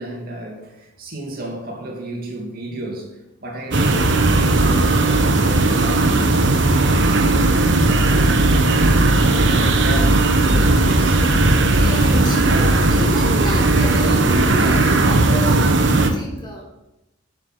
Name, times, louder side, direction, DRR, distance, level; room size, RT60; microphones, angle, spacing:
voice 1, 0.0-6.6 7.4-11.3, right 1 dB, 45° right, 0 dB, 2.6 m, -32 dB
sound 1, 3.7-16.1, right 2 dB, 65° right, 1.2 m, -16 dB
voice 2, 11.7-16.6, equal, 25° left, -2 dB, 3.6 m, -31 dB
10.5 x 7.8 x 6.5 m, 0.90 s
head